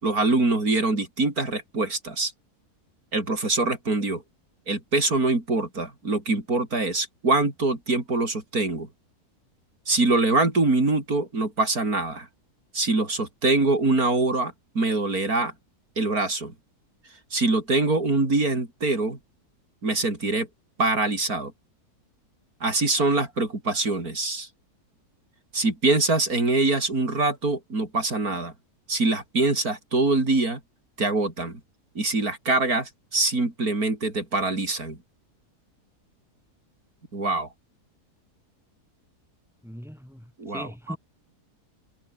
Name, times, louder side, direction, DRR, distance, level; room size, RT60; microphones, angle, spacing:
voice 1, 0.0-2.3 3.1-4.2 4.7-8.9 9.9-12.3 12.7-15.5 16.0-16.5 17.3-19.2 19.8-20.5 20.8-21.5 22.6-24.5 25.5-28.5 28.9-30.6 31.0-31.6 32.0-35.0 37.1-37.5 40.4-41.0, right 2 dB, 65° right, 5.7 m, -24 dB
voice 2, 39.6-41.0, equal, ahead, 4.5 m, -39 dB
omnidirectional pair, 1.7 m